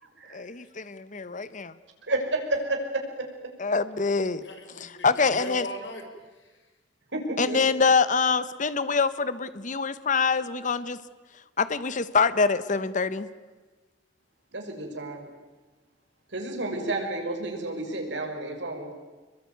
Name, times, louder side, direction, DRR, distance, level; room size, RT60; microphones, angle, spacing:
voice 1, 0.3-1.7 3.6-4.4 4.8-5.7 7.4-11.0 11.6-13.3, left 4 dB, 45° left, 14 dB, 1.1 m, -25 dB
voice 2, 2.1-3.3 7.1-7.6 14.5-15.3 16.3-18.9, right 2 dB, 75° right, 3 dB, 6.0 m, -30 dB
voice 3, 4.4-6.6, left 1 dB, 75° left, 4 dB, 5.9 m, -40 dB
27.5 x 22.5 x 9.4 m, 1.3 s
head